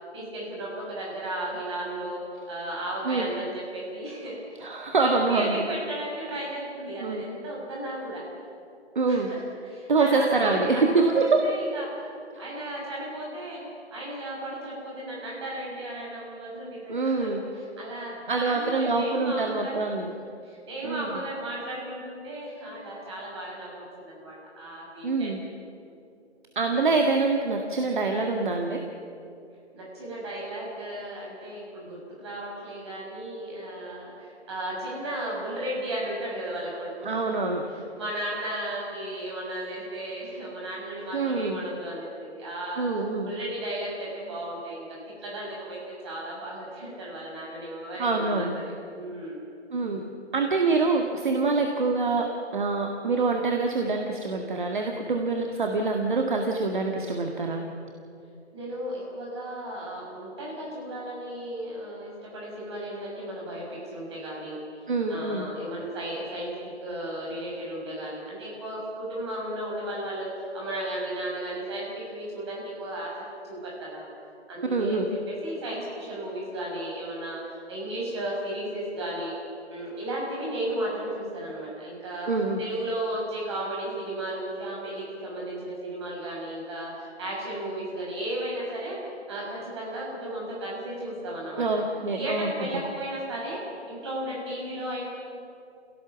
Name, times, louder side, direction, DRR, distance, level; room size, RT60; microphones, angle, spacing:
voice 1, 0.1-4.7 5.0-8.2 9.1-11.9 12.4-13.6 13.9-17.3 17.8-19.8 20.4-25.3 29.7-37.4 37.7-42.9 43.2-44.9 45.2-49.4 58.5-64.6 65.1-66.5 66.8-73.1 73.4-74.1 74.5-79.3 79.7-82.3 82.6-89.0 89.3-91.8 92.1-93.6 93.9-95.1, right 1 dB, 25° right, -4 dB, 6.4 m, -35 dB
voice 2, 4.6-5.5 7.0-7.2 9.0-9.3 9.9-11.4 16.9-17.4 18.3-20.1 20.8-21.1 25.0-25.4 26.6-28.8 37.0-37.6 41.1-41.6 42.8-43.3 48.0-48.6 49.7-50.0 50.3-52.3 52.5-57.6 64.9-65.5 74.7-75.1 82.3-82.6 91.6-92.5, right 3 dB, 45° right, 2 dB, 2.0 m, -25 dB
27.0 x 17.5 x 7.3 m, 2.5 s
figure-of-eight pair, 160°, 34 cm